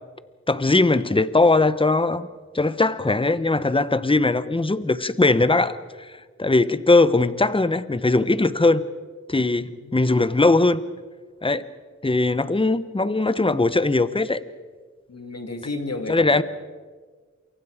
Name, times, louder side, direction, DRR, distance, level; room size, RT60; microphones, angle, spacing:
voice 1, 0.5-2.3 2.5-6.1 6.4-8.8 9.3-10.8 11.4-11.7 12.0-14.4 16.1-16.4, left 2 dB, 20° left, 14 dB, 1.0 m, -20 dB
voice 2, 9.4-10.0 15.1-16.4, left 3 dB, 60° left, 5 dB, 2.5 m, -33 dB
28.5 x 23.5 x 5.1 m, 1.5 s
cardioid pair, 55°, 29 cm